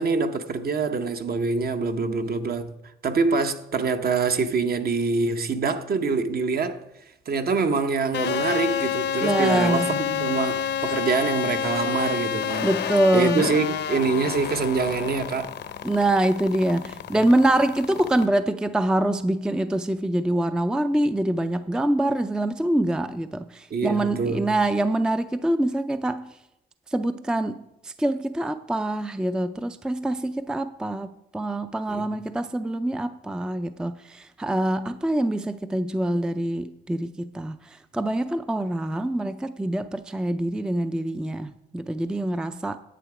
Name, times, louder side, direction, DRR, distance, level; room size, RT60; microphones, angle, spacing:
voice 1, 0.0-2.7 3.0-6.8 7.3-12.7 13.1-15.5 23.7-24.5 31.9-32.1, right 4 dB, 50° right, 0.9 m, -25 dB
sound 1, 8.1-18.3, left 8 dB, 60° left, 0.7 m, -29 dB
voice 2, 9.2-10.0 12.6-13.5 15.8-26.3 26.9-42.8, right 1 dB, 5° right, 0.4 m, -25 dB
10.0 x 8.3 x 4.9 m
cardioid pair, 90°, 20 cm